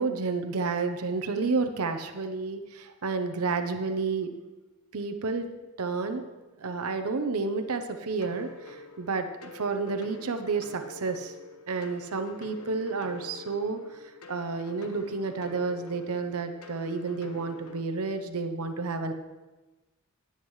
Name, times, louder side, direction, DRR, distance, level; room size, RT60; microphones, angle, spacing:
voice 1, 0.0-4.4 4.9-5.5 5.8-6.3 6.6-11.3 11.7-19.1, right 4 dB, 90° right, 6 dB, 0.8 m, -31 dB
sound 1, 8.2-17.8, left 2 dB, 90° left, 1.0 m, -47 dB
18.5 x 8.2 x 3.2 m, 1.2 s
head